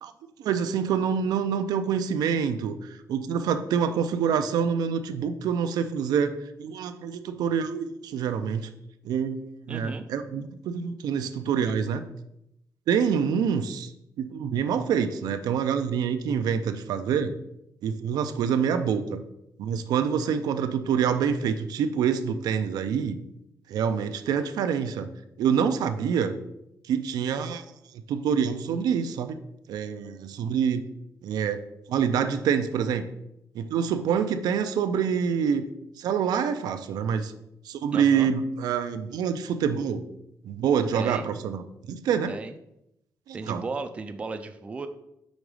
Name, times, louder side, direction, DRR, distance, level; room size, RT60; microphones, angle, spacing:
voice 1, 0.0-8.7 9.0-12.0 12.9-13.9 14.2-17.3 17.8-19.2 19.6-23.2 23.7-25.1 25.4-26.4 26.9-27.6 28.1-29.4 29.7-30.8 31.2-31.6 31.9-33.0 33.5-35.7 36.0-37.3 37.7-40.0 40.4-41.6 41.9-42.3 43.3-43.6, right 7 dB, 85° right, 9 dB, 0.5 m, -26 dB
voice 2, 9.7-10.1 37.9-38.3 40.9-41.3 42.3-42.5 43.3-44.9, right 4 dB, 20° right, 8 dB, 0.3 m, -35 dB
5.2 x 3.9 x 4.7 m, 0.82 s
wide cardioid pair, 180°, 7 cm